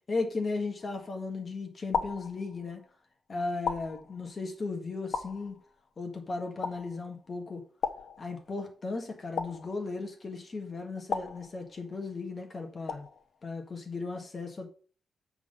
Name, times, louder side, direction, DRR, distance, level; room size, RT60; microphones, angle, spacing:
voice 1, 0.1-2.8 3.3-5.6 6.0-7.6 8.2-13.0 13.4-14.7, left 3 dB, 35° left, 1.5 m, -36 dB
sound 1, 0.8-1.3 1.9-2.9 3.7-4.5 5.1-6.0 6.6-7.3 7.8-8.7 9.4-10.2 11.1-12.1 12.9-13.5, left 5 dB, 70° left, 1.0 m, -37 dB
7.4 x 3.8 x 6.6 m
wide cardioid pair, 150°, 0 cm